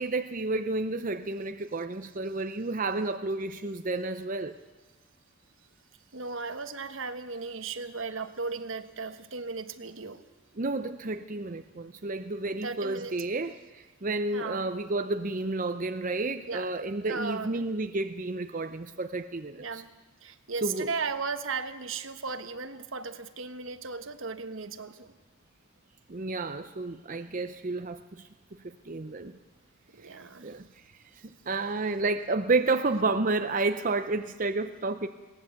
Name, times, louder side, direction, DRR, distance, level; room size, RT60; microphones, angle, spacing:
voice 1, 0.0-4.5 10.6-19.8 20.6-20.9 26.1-28.3 28.6-29.4 30.0-30.1 30.4-30.7 31.2-35.1, right 3 dB, 40° right, 8 dB, 0.6 m, -31 dB
voice 2, 6.1-10.2 12.6-13.5 14.3-14.7 16.5-17.7 19.6-19.9 20.2-25.1 29.9-30.5 32.5-32.6, right 4 dB, 70° right, 10 dB, 1.2 m, -36 dB
21.0 x 18.0 x 8.3 m, 1.2 s
head